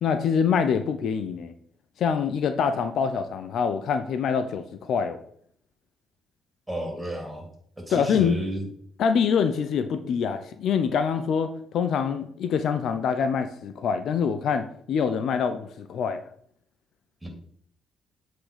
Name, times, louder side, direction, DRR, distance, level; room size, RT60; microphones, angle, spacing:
voice 1, 0.0-1.5 2.0-5.2 7.9-8.4 9.0-16.2, left 6 dB, 70° left, 10 dB, 0.6 m, -25 dB
voice 2, 6.7-7.5 7.8-8.7 17.2-17.3, right 1 dB, 10° right, 2 dB, 3.3 m, -32 dB
8.0 x 3.8 x 5.0 m, 0.63 s
supercardioid pair, 60°, 0 cm